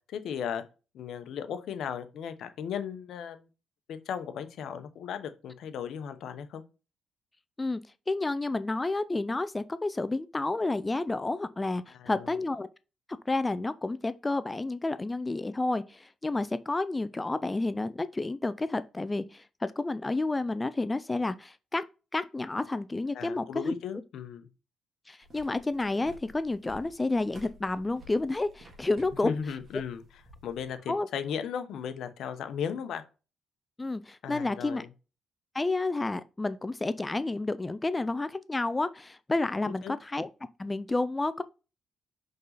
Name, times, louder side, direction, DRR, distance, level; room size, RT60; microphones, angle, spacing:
voice 1, 0.1-0.6 0.9-3.5 3.9-6.6 11.9-12.4 23.1-24.5 29.2-30.0 30.4-33.0 34.2-34.9 39.6-39.9, left 7 dB, 75° left, 1.0 m, -36 dB
voice 2, 8.1-12.7 13.1-21.8 22.1-23.7 25.1-29.3 30.9-31.1 33.8-34.9 35.5-40.3 40.6-41.4, left 2 dB, 20° left, 0.4 m, -30 dB
sound 1, 25.2-30.7, equal, 40° right, 3.0 m, -53 dB
5.4 x 5.4 x 4.0 m
cardioid pair, 90°, 0 cm